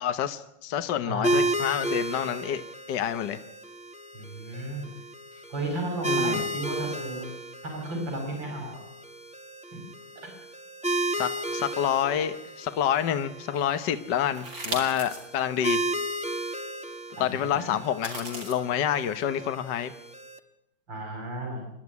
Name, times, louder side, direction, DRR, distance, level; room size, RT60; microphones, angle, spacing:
voice 1, 0.0-2.6 2.9-3.4 6.0-6.4 11.1-15.8 17.2-19.9, left 9 dB, 65° left, 10 dB, 1.6 m, -28 dB
voice 2, 1.0-1.5 4.1-4.9 5.5-7.3 7.6-8.8 9.7-9.8 11.2-11.3 17.1-17.7 20.9-21.6, right 1 dB, 75° right, 2 dB, 6.2 m, -34 dB
sound 1, 1.2-20.4, right 1 dB, 5° right, 1.3 m, -33 dB
sound 2, 14.3-15.3 15.8-15.9 17.8-18.6, right 2 dB, 45° right, 4.1 m, -36 dB
28.0 x 11.5 x 9.5 m, 0.80 s
omnidirectional pair, 2.1 m